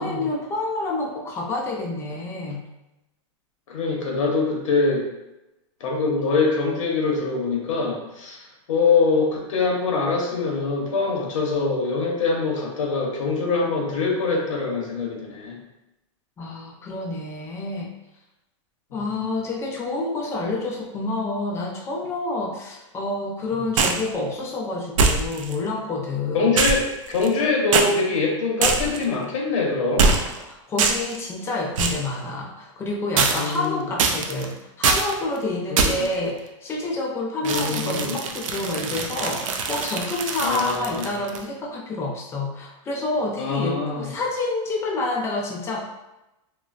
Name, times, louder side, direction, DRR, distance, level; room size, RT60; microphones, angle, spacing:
voice 1, 0.0-2.6 16.4-17.9 18.9-26.6 30.4-45.8, left 2 dB, 15° left, -1 dB, 0.4 m, -28 dB
voice 2, 3.7-5.1 5.8-8.4 8.7-15.6 19.2-19.3 23.5-23.7 26.3-30.1 33.4-33.8 35.7-36.1 37.4-38.2 40.4-41.1 43.4-44.1, left 4 dB, 90° left, -1 dB, 0.7 m, -24 dB
sound 1, 23.8-24.1 25.0-25.5 26.6-27.4 27.7-27.9 28.6-29.0 30.0-30.4 30.8-31.2 31.8-32.1 33.2-33.6 34.0-34.4 34.8-35.1 35.8-36.1 37.4-41.4, right 4 dB, 90° right, 0.4 m, -23 dB
3.0 x 2.0 x 2.4 m, 0.94 s
supercardioid pair, 145°, 16 cm